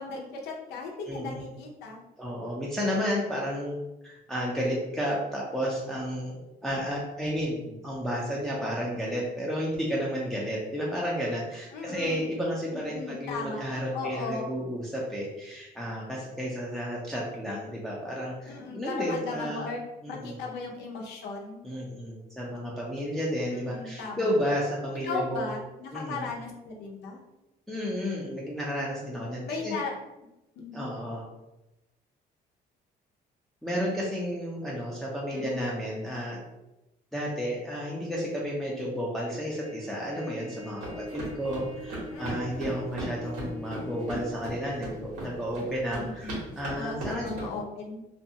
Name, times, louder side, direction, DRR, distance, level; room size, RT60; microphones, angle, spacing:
voice 1, 0.0-2.0 11.7-12.2 12.7-13.7 13.9-14.5 18.4-21.6 23.5-24.3 25.1-27.2 29.5-29.9 30.6-30.9 35.3-35.6 42.1-42.5 46.0-46.4 46.7-48.0, left 4 dB, 80° left, 0 dB, 0.6 m, -36 dB
voice 2, 1.1-1.4 2.2-19.7 20.0-20.4 21.6-25.5 25.9-26.3 27.7-29.8 30.7-31.2 33.6-36.4 37.1-47.3, equal, ahead, -5 dB, 0.5 m, -32 dB
Trumpet, 39.3-44.3, left 3 dB, 35° right, 0.8 m, -44 dB
sound 1, 40.8-47.5, right 2 dB, 85° right, 1.2 m, -37 dB
2.5 x 2.2 x 2.7 m, 0.95 s
cardioid pair, 110°, 17 cm